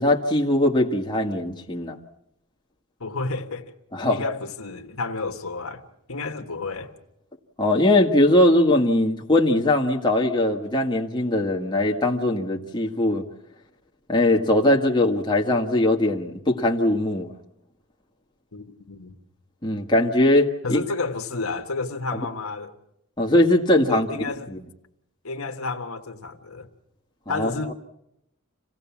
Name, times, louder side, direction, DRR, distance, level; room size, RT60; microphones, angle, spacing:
voice 1, 0.0-2.0 3.9-4.2 7.6-13.3 14.1-17.3 19.6-20.8 23.2-24.1 24.5-24.6 27.3-27.5, left 1 dB, 20° left, 1.7 m, -20 dB
voice 2, 3.0-3.7 4.1-6.9 18.5-19.1 20.6-22.7 23.9-24.6 25.2-26.7 27.3-27.7, left 3 dB, 85° left, 1.6 m, -31 dB
27.5 x 17.0 x 7.3 m
head